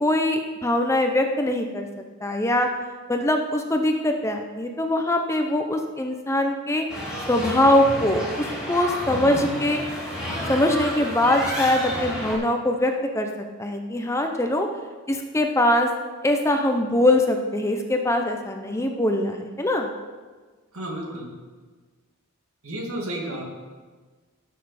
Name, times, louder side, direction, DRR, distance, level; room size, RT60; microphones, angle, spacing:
voice 1, 0.0-1.9 2.2-2.7 3.1-6.8 7.3-9.8 10.5-13.3 13.6-14.7 15.1-15.9 16.2-19.9, left 1 dB, 15° left, 4 dB, 0.6 m, -22 dB
sound 1, 6.9-12.3, equal, 5° right, 2.9 m, -31 dB
voice 2, 20.7-21.3 22.6-23.4, right 1 dB, 75° right, 0 dB, 2.3 m, -32 dB
16.5 x 6.6 x 4.2 m, 1.4 s
head